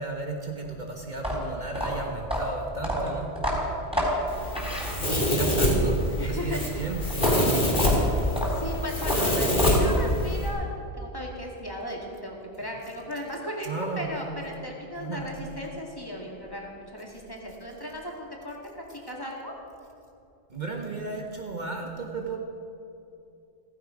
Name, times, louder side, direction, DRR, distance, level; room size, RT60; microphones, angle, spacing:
voice 1, 0.0-3.3 5.1-7.0 8.0-8.4 13.6-14.1 15.0-15.3 20.5-22.4, right 3 dB, 45° right, 1 dB, 1.5 m, -34 dB
sound 1, 1.1-5.4 7.1-10.1, equal, 5° right, 3.8 m, -29 dB
Domestic sounds home sounds, 4.3-10.5, equal, 50° left, 3.0 m, -25 dB
voice 2, 4.9-5.7 6.2-6.8 8.5-19.5, left 1 dB, 20° left, -1 dB, 2.2 m, -36 dB
15.5 x 15.5 x 5.1 m, 2.7 s
omnidirectional pair, 1.1 m